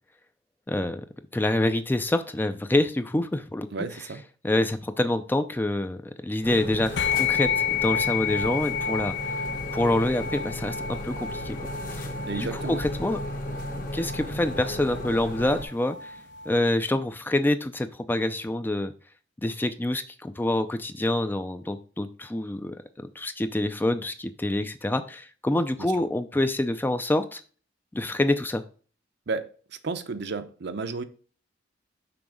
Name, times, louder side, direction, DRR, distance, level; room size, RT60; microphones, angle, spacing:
voice 1, 0.7-1.1 1.3-3.7 4.4-9.2 9.7-11.7 12.3-13.2 13.9-16.1 16.5-18.9 19.4-27.4 27.9-28.6, left 1 dB, 10° left, 0.4 m, -26 dB
voice 2, 3.7-4.2 12.3-12.8 29.3-29.5 29.8-31.0, right 4 dB, 65° right, 0.7 m, -32 dB
sound 1, 6.4-15.6, left 1 dB, 50° left, 1.2 m, -35 dB
sound 2, 7.0-16.7, left 7 dB, 70° left, 0.5 m, -31 dB
6.0 x 4.0 x 5.0 m
head